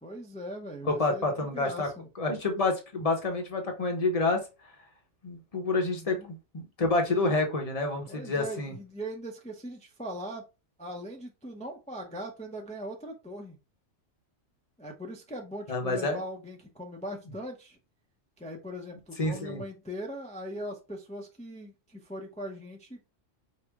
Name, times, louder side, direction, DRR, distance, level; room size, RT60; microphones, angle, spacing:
voice 1, 0.0-2.1 5.8-6.3 7.1-7.2 8.1-10.4 10.8-13.6 14.8-17.8 18.4-23.0, equal, 10° left, 2 dB, 0.5 m, -40 dB
voice 2, 0.8-1.9 2.2-4.5 5.2-8.7 15.7-16.2 19.2-19.6, left 3 dB, 35° left, 3 dB, 0.8 m, -28 dB
4.8 x 2.1 x 3.5 m, 0.28 s
omnidirectional pair, 1.3 m